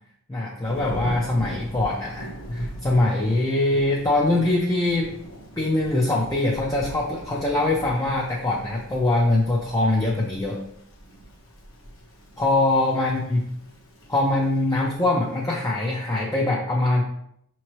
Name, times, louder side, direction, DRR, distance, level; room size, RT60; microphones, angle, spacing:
voice 1, 0.3-5.2 5.6-10.6 12.4-13.4 14.1-17.0, left 2 dB, 15° left, -3 dB, 0.5 m, -23 dB
Thunder / Rain, 0.6-16.2, right 1 dB, 60° left, 0.9 m, -41 dB
5.6 x 3.0 x 3.0 m, 0.73 s
head